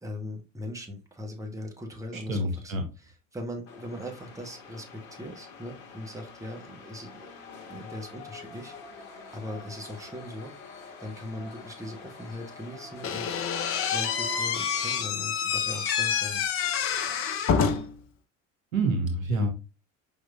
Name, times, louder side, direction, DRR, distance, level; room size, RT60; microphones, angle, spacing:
voice 1, 0.0-7.3 7.7-13.4 13.9-16.4, left 1 dB, 10° right, 2 dB, 1.1 m, -40 dB
voice 2, 2.1-2.8 18.7-19.5, right 2 dB, 80° right, 4 dB, 1.0 m, -27 dB
sound 1, 3.7-16.0, left 4 dB, 50° left, 1.2 m, -47 dB
Slam / Squeak, 13.0-18.0, left 7 dB, 35° left, 0.6 m, -27 dB
4.8 x 3.7 x 2.3 m, 0.30 s
figure-of-eight pair, 60°, 40 cm